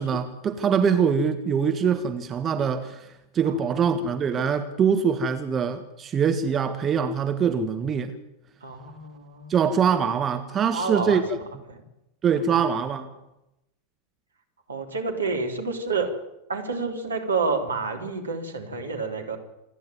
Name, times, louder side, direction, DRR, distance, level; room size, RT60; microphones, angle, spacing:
voice 1, 0.0-3.1 3.3-8.1 9.5-11.2 12.2-13.1, right 6 dB, 25° right, 8 dB, 1.4 m, -23 dB
voice 2, 3.4-4.0 8.6-9.5 10.7-11.4 11.7-11.8 12.3-12.7 14.7-16.1 16.5-19.4, right 4 dB, 75° right, 4 dB, 3.2 m, -29 dB
27.0 x 10.5 x 9.3 m, 0.90 s
figure-of-eight pair, 90°, 0 cm